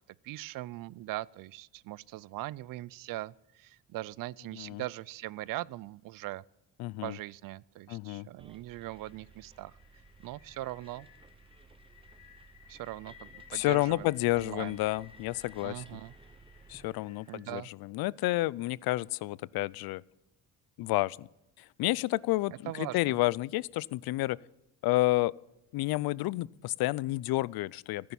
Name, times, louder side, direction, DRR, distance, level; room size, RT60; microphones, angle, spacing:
voice 1, 0.2-6.4 7.0-9.8 10.2-11.1 12.7-14.1 14.4-14.8 15.6-16.1 17.3-17.7 22.7-23.1, right 16 dB, 70° right, 24 dB, 0.5 m, -40 dB
voice 2, 6.8-7.2 7.9-8.3 13.5-15.8 16.7-20.0 20.8-21.3 21.6-24.4 24.8-25.3 25.7-28.1, left 19 dB, 85° left, 23 dB, 0.5 m, -30 dB
Bus, 8.4-16.9, right 4 dB, 15° right, 0.8 m, -57 dB
sound 1, 8.8-17.4, left 8 dB, 55° left, 1.7 m, -58 dB
15.0 x 10.5 x 7.1 m, 0.88 s
cardioid pair, 150°, 35 cm